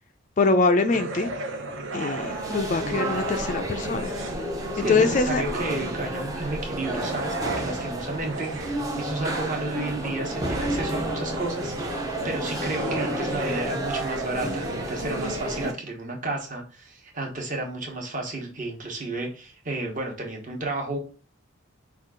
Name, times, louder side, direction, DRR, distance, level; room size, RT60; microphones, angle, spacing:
voice 1, 0.4-1.3 1.9-4.1 4.8-5.4, left 3 dB, 35° left, 8 dB, 0.3 m, -23 dB
sound 1, 0.9-3.5 3.8-6.2 6.7-15.3, right 2 dB, 60° right, 0.9 m, -36 dB
sound 2, 2.1-15.7, right 1 dB, 15° right, 0.6 m, -31 dB
voice 2, 4.7-21.0, right 2 dB, 35° right, 1 dB, 1.1 m, -32 dB
5.3 x 2.4 x 3.6 m, 0.36 s
head